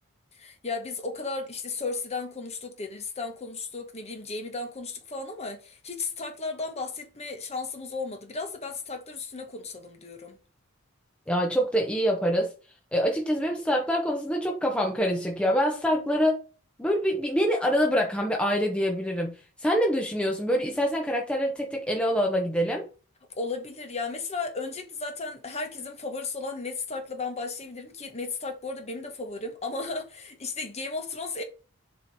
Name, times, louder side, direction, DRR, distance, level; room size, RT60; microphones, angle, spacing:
voice 1, 0.4-10.4 23.4-31.4, left 3 dB, 30° left, 1.1 m, -35 dB
voice 2, 11.3-12.5 12.9-16.4 16.8-19.3 19.6-22.9, equal, 5° left, 0.8 m, -25 dB
7.4 x 3.1 x 4.1 m
head